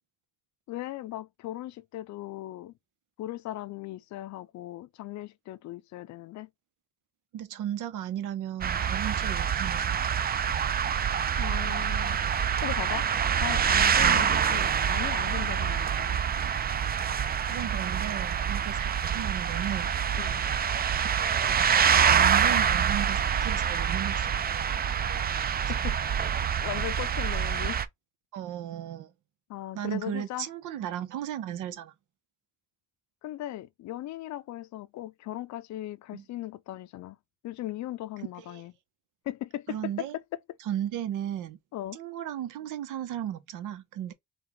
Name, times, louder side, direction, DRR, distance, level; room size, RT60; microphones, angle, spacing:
voice 1, 0.7-2.7 3.2-6.5 11.4-12.2 12.6-13.1 13.4-16.2 20.2-20.4 25.7-26.0 26.6-27.8 29.5-30.5 33.2-37.2 37.4-38.7 39.3-39.9 41.7-42.0, left 14 dB, 70° left, 0.5 m, -38 dB
voice 2, 7.3-10.0 14.0-14.3 17.4-19.9 21.2-25.7 28.3-29.1 29.7-31.9 36.1-36.2 38.4-38.6 39.7-40.2 40.6-41.6 41.9-44.1, right 10 dB, 90° right, 0.8 m, -36 dB
sound 1, 8.6-27.9, right 8 dB, 30° right, 0.4 m, -26 dB
4.3 x 2.4 x 3.9 m
cardioid pair, 90°, 30 cm